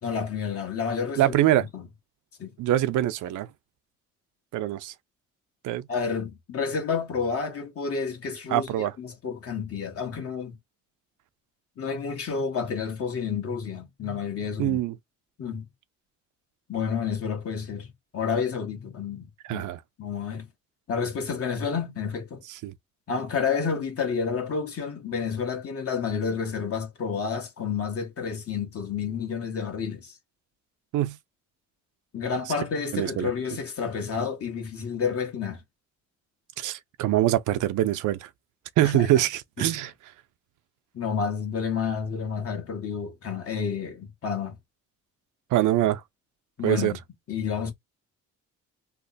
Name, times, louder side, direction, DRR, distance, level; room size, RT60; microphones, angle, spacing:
voice 1, 0.0-1.9 2.4-2.5 5.9-10.5 11.8-14.8 15.4-15.7 16.7-19.7 20.0-20.5 20.9-22.4 23.1-30.2 32.1-35.6 38.8-39.3 39.6-39.8 40.9-44.6 46.6-47.0 47.3-47.7, left 6 dB, 50° left, 1.4 m, -30 dB
voice 2, 1.2-1.7 2.6-3.5 4.5-4.9 5.6-5.9 8.5-8.9 14.6-14.9 19.5-19.8 22.6-22.7 30.9-31.2 32.9-33.3 36.6-38.3 38.8-39.9 45.5-46.0 46.6-46.9, right 14 dB, 80° right, 0.6 m, -24 dB
3.3 x 2.0 x 3.9 m
cardioid pair, 90°, 30 cm